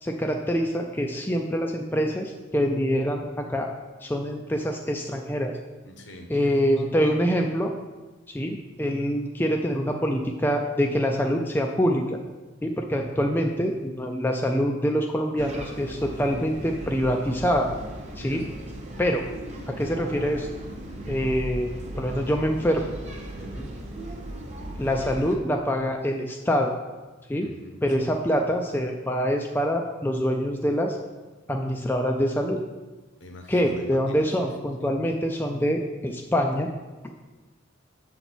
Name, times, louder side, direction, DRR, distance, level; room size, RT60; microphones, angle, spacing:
voice 1, 0.0-3.7 4.0-5.6 6.3-7.7 8.3-12.2 12.6-17.7 18.2-18.4 19.0-19.2 19.7-20.5 21.1-21.7 22.0-22.9 24.8-26.7 27.3-27.5 27.8-31.0 31.5-32.6 33.5-36.7, equal, 10° left, 2 dB, 0.4 m, -25 dB
voice 2, 5.8-6.9 18.2-18.4 20.9-21.2 23.4-23.7 27.4-28.1 33.2-34.3 34.8-34.9, equal, 60° left, 4 dB, 0.9 m, -44 dB
sound 1, 15.4-25.4, right 1 dB, 35° right, 0.9 m, -37 dB
7.0 x 4.0 x 6.0 m, 1.2 s
head